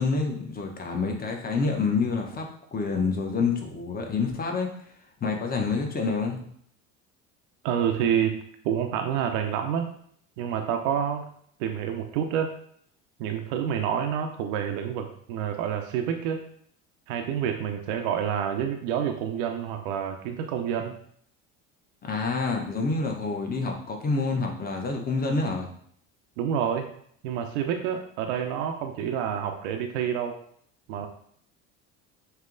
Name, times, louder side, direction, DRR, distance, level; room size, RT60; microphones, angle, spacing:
voice 1, 0.0-4.7 5.2-6.4 22.0-25.7, left 4 dB, 25° left, 2 dB, 0.9 m, -27 dB
voice 2, 7.6-8.3 8.6-9.9 10.4-11.2 11.6-12.5 13.2-16.4 17.1-20.9 26.4-26.9 27.2-30.4 30.9-31.1, right 8 dB, 70° right, 6 dB, 0.6 m, -28 dB
5.5 x 2.9 x 2.5 m, 0.64 s
hypercardioid pair, 75°, 40 cm